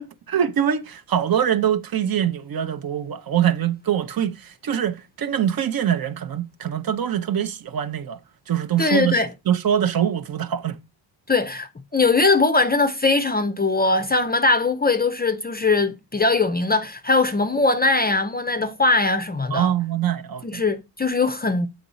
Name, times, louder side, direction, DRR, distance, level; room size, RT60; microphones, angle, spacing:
voice 1, 0.0-4.3 4.6-8.2 8.5-9.2 9.5-10.8 19.5-20.6, right 9 dB, 50° right, 0.6 m, -23 dB
voice 2, 8.8-9.3 11.3-19.7 20.4-21.7, left 3 dB, 20° left, 0.5 m, -21 dB
8.0 x 3.9 x 4.0 m
wide cardioid pair, 145°, 47 cm